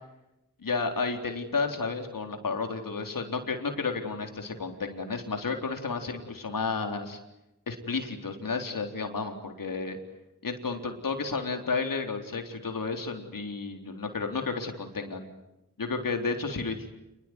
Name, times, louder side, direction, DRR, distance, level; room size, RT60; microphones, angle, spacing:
voice 1, 0.6-7.2 7.7-10.0 10.4-15.3 15.8-16.9, left 4 dB, 80° left, 5 dB, 4.0 m, -32 dB
28.0 x 21.5 x 9.7 m, 0.91 s
cardioid pair, 50°, 33 cm